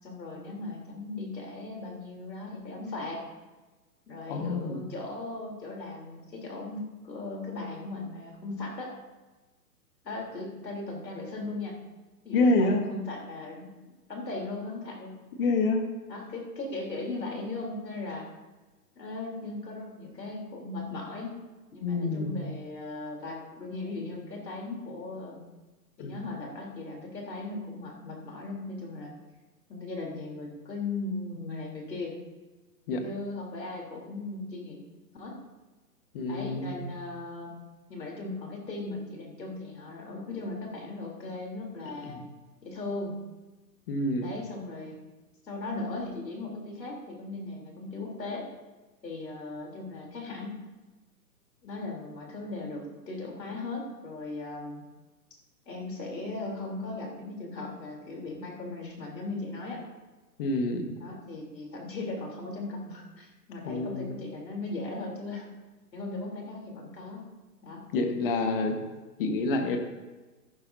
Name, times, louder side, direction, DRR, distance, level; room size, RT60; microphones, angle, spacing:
voice 1, 0.0-3.2 4.1-8.9 10.0-11.8 12.2-15.1 16.1-18.3 19.0-21.4 21.7-25.4 26.0-29.1 29.7-32.2 33.0-34.8 35.1-35.4 36.3-37.6 37.9-42.2 42.6-43.1 44.2-45.0 45.4-48.5 49.0-50.5 51.6-54.8 55.7-59.8 61.0-65.5 65.9-67.2 67.6-67.8, left 2 dB, 80° left, -1 dB, 3.6 m, -38 dB
voice 2, 4.3-4.8 12.3-12.8 15.4-15.8 21.8-22.4 26.0-26.1 32.9-33.0 36.1-36.8 42.0-42.2 43.9-44.3 60.4-60.9 63.6-64.1 67.9-68.8 69.2-69.8, left 2 dB, 35° left, 5 dB, 1.4 m, -27 dB
14.0 x 11.0 x 2.7 m, 1.2 s
hypercardioid pair, 140°, 50 cm